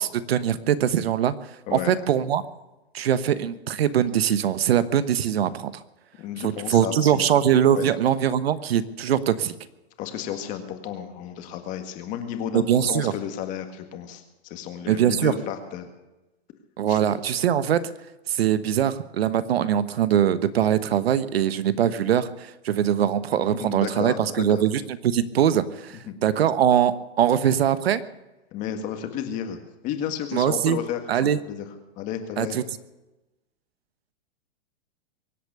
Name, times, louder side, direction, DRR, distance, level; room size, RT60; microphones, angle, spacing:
voice 1, 0.0-1.3 1.7-2.4 2.9-5.7 6.4-9.5 12.5-13.1 14.9-15.3 16.8-17.8 18.3-28.0 30.3-30.8 31.1-31.4 32.4-32.6, right 9 dB, 75° right, 14 dB, 1.2 m, -22 dB
voice 2, 6.2-7.2 7.7-7.8 10.0-15.9 16.9-17.0 23.5-24.6 26.0-26.2 28.5-31.6 32.0-32.6, left 9 dB, 25° left, 7 dB, 1.7 m, -32 dB
23.5 x 8.3 x 6.7 m, 1.0 s
hypercardioid pair, 165°, 31 cm